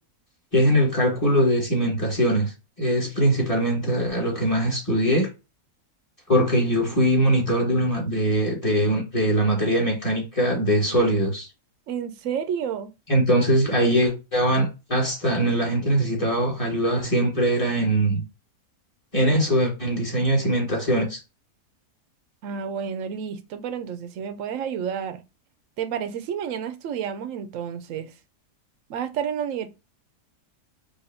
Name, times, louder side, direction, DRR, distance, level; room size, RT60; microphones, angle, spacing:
voice 1, 0.5-2.5 2.8-5.3 6.3-11.5 13.1-18.2 19.1-21.2, equal, 25° left, 1.6 m, -22 dB
voice 2, 11.9-12.9 22.4-25.2 25.8-28.1 28.9-29.7, right 8 dB, 65° right, 0.9 m, -30 dB
4.9 x 2.7 x 2.6 m
omnidirectional pair, 1.6 m